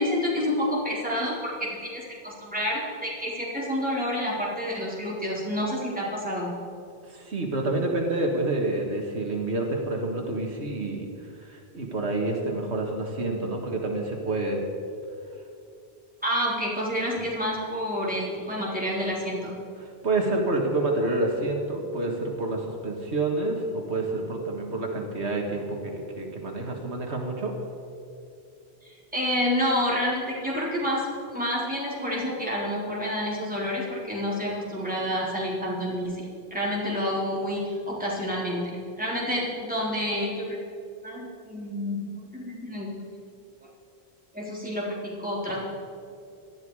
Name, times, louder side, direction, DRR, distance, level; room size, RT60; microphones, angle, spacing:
voice 1, 0.0-6.5 16.2-19.5 28.8-40.6 41.0-42.9 44.3-45.6, equal, 10° right, -6 dB, 3.9 m, -29 dB
voice 2, 7.1-11.1 11.5-14.6 20.0-27.5, right 2 dB, 85° right, 1 dB, 2.1 m, -28 dB
18.0 x 13.0 x 4.9 m, 2.5 s
omnidirectional pair, 1.1 m